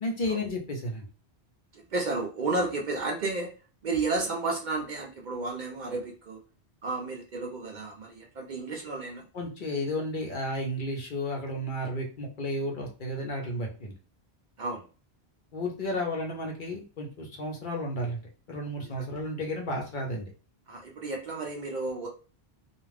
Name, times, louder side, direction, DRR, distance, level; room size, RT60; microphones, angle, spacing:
voice 1, 0.0-1.1 9.3-13.9 15.5-20.3, left 1 dB, 55° left, 0 dB, 0.8 m, -33 dB
voice 2, 1.7-3.5 3.8-6.4 6.8-9.3 14.6-14.8 18.8-19.1 20.7-22.1, right 3 dB, 55° right, 0 dB, 0.6 m, -32 dB
2.4 x 2.3 x 3.2 m, 0.36 s
omnidirectional pair, 1.1 m